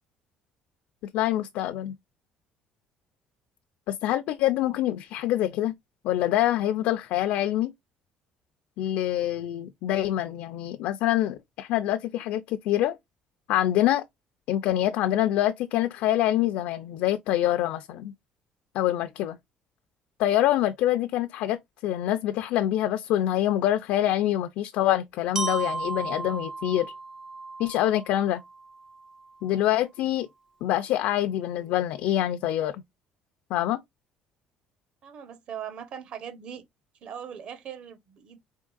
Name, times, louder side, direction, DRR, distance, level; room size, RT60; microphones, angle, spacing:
voice 1, 1.1-1.9 3.9-5.7 6.0-7.7 8.8-13.0 13.5-14.0 14.5-18.1 18.7-19.4 20.2-26.9 27.6-28.4 29.4-30.3 30.6-32.8 33.5-33.8, left 13 dB, 75° left, 0.4 m, -25 dB
Glockenspiel, 25.4-29.3, right 3 dB, 20° right, 0.3 m, -35 dB
voice 2, 35.0-36.6 37.0-38.4, right 8 dB, 45° right, 0.9 m, -40 dB
4.4 x 3.6 x 2.3 m
cardioid pair, 165°, 3 cm